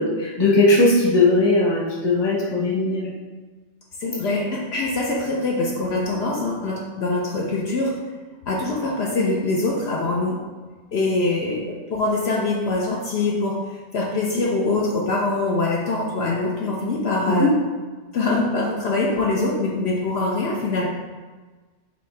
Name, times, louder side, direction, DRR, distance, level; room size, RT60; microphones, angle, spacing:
voice 1, 0.0-3.1 17.3-17.5, left 2 dB, 25° left, -4 dB, 0.8 m, -18 dB
voice 2, 4.0-7.9 8.5-10.4 10.9-17.5 18.1-20.9, left 2 dB, 65° left, -2 dB, 0.8 m, -23 dB
5.3 x 2.7 x 3.2 m, 1.3 s
omnidirectional pair, 1.2 m